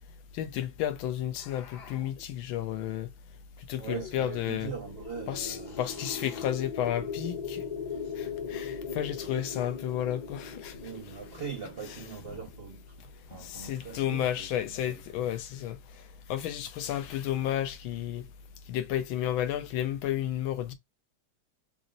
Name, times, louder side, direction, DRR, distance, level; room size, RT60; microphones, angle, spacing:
voice 1, 0.3-3.1 3.7-4.7 5.3-7.6 8.2-10.8 13.3-16.0 16.3-18.2 18.7-20.7, left 11 dB, 80° left, 1.4 m, -32 dB
sound 1, 1.3-2.2 3.7-4.5 5.6-6.6 7.9-8.3 9.2-9.9, left 6 dB, 60° left, 1.4 m, -51 dB
voice 2, 3.8-5.8 10.7-15.2, right 6 dB, 80° right, 0.5 m, -41 dB
sound 2, 4.7-12.8, left 5 dB, 40° left, 0.5 m, -39 dB
4.1 x 2.1 x 3.7 m
omnidirectional pair, 2.2 m